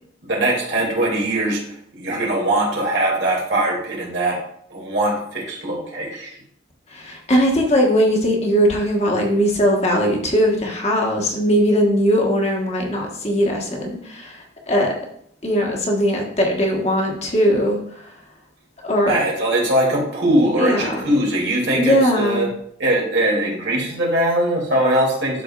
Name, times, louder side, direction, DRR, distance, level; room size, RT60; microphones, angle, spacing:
voice 1, 0.2-1.6 1.9-4.4 4.7-6.4 19.1-22.5 22.8-25.4, right 1 dB, 65° right, -2 dB, 2.4 m, -21 dB
voice 2, 6.9-14.9 15.4-18.1 18.8-19.2 20.6-21.1 21.7-22.5, equal, 35° left, -1 dB, 1.4 m, -19 dB
12.0 x 4.5 x 2.4 m, 0.67 s
head